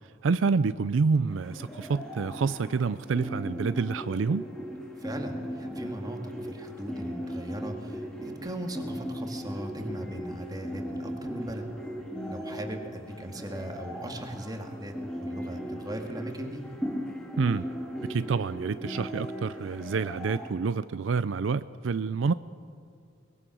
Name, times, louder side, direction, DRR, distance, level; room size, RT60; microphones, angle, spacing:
voice 1, 0.2-4.4 17.4-17.7 18.1-22.3, right 4 dB, 75° right, 14 dB, 0.4 m, -28 dB
sound 1, 1.3-20.5, equal, 5° left, 2.4 m, -38 dB
voice 2, 5.0-11.6 12.3-16.6, right 1 dB, 20° right, 3 dB, 2.2 m, -38 dB
22.0 x 21.5 x 6.2 m, 2.4 s
head